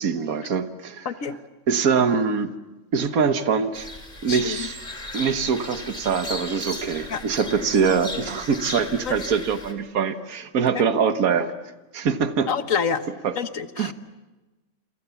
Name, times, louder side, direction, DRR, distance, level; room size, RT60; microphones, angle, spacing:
voice 1, 0.0-1.1 1.7-2.5 2.9-3.9 4.2-4.7 5.1-11.5 11.9-12.5 13.2-13.3 13.8-13.9, right 6 dB, 70° right, 10 dB, 1.7 m, -23 dB
voice 2, 1.0-1.4 4.3-4.7 7.1-7.2 9.0-9.2 10.7-10.8 12.5-13.0 13.3-13.9, left 6 dB, 65° left, 10 dB, 1.6 m, -27 dB
sound 1, 3.7-9.7, left 1 dB, 30° left, 3.2 m, -36 dB
28.5 x 28.0 x 7.1 m, 1.1 s
omnidirectional pair, 1.6 m